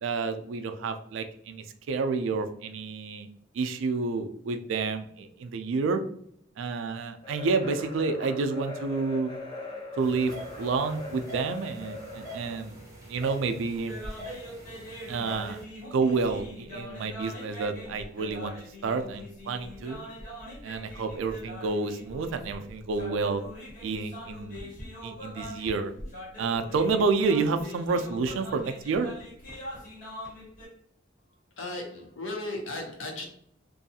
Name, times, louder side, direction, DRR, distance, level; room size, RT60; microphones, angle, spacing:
voice 1, 0.0-3.3 3.5-6.0 6.6-9.4 9.9-12.8 13.0-14.0 15.1-15.6 15.9-18.5 18.8-20.0 20.6-23.4 23.8-24.7 25.0-25.9 26.4-29.1, right 4 dB, 75° right, 7 dB, 0.3 m, -29 dB
sound 1, 7.2-12.7, left 2 dB, 25° left, 0.7 m, -40 dB
sound 2, 10.0-15.6, equal, 15° right, 0.6 m, -45 dB
sound 3, 13.9-30.7, equal, 45° left, 1.2 m, -43 dB
voice 2, 31.6-33.3, left 2 dB, 80° left, 3 dB, 0.7 m, -35 dB
2.6 x 2.3 x 2.7 m, 0.68 s
head